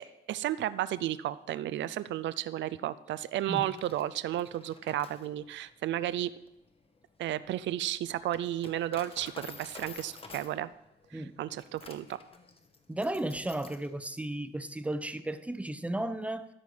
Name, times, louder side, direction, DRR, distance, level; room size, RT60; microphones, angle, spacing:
voice 1, 0.0-6.3 7.2-10.7 11.1-12.2, right 13 dB, 70° right, 16 dB, 0.4 m, -33 dB
Coin (dropping), 3.4-13.9, left 4 dB, 30° left, 1.0 m, -51 dB
voice 2, 12.9-16.5, right 1 dB, 5° right, 12 dB, 0.6 m, -34 dB
13.5 x 5.4 x 4.9 m, 0.87 s
cardioid pair, 90°, 20 cm